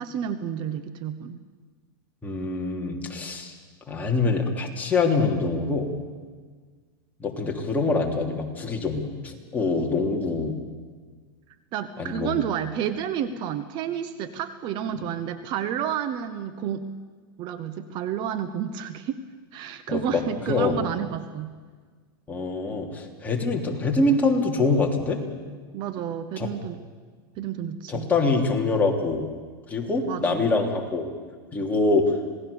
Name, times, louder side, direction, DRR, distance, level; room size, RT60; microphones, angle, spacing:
voice 1, 0.0-1.4 11.7-16.8 17.4-19.2 19.5-21.6 25.7-26.8 27.4-28.1 30.1-30.4, right 9 dB, 40° right, 11 dB, 1.2 m, -30 dB
voice 2, 2.2-3.5 3.9-5.9 7.2-10.6 12.0-12.4 19.9-20.2 20.5-20.8 22.3-25.2 26.4-26.5 27.9-29.3 29.7-31.1 31.5-32.1, left 3 dB, 15° left, 0 dB, 3.3 m, -24 dB
27.0 x 18.5 x 7.1 m, 1.5 s
hypercardioid pair, 130°, 12 cm